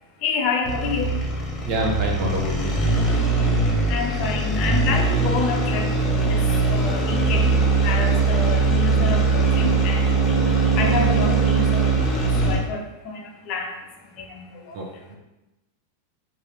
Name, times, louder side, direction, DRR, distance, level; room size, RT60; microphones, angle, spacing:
voice 1, 0.2-1.2 3.9-10.2 10.8-12.1 12.4-13.8 14.2-14.8, left 4 dB, 40° left, 2 dB, 0.5 m, -28 dB
sound 1, 0.6-12.8, right 3 dB, 20° left, 0.9 m, -21 dB
voice 2, 1.6-2.8 14.7-15.2, right 1 dB, 40° right, -1 dB, 0.8 m, -28 dB
3.6 x 2.5 x 3.2 m, 0.98 s
figure-of-eight pair, 90°, 0 cm